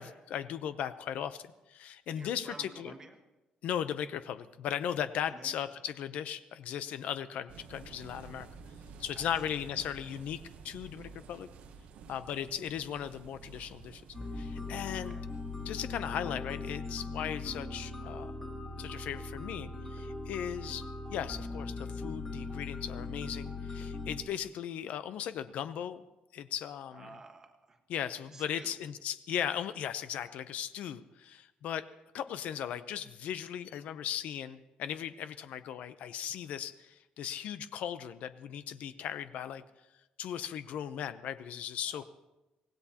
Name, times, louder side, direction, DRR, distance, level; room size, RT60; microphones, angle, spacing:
voice 1, 0.0-2.9 3.6-8.5 9.0-11.5 12.1-14.0 14.3-15.2 15.6-18.3 18.8-26.0 26.3-27.1 27.9-31.9 32.1-39.6 40.2-42.0, left 9 dB, 60° left, 12 dB, 0.6 m, -37 dB
voice 2, 2.1-3.2 5.3-5.5 9.1-9.3 12.3-12.5 14.9-15.2 26.9-27.8 28.3-28.7 41.9-42.0, right 3 dB, 20° right, 5 dB, 1.4 m, -51 dB
sound 1, 7.5-15.7, right 5 dB, 60° right, 0.9 m, -51 dB
sound 2, 14.1-24.2, left 3 dB, 20° left, 2.1 m, -40 dB
25.0 x 18.0 x 2.9 m, 1.0 s
cardioid pair, 180°, 3 cm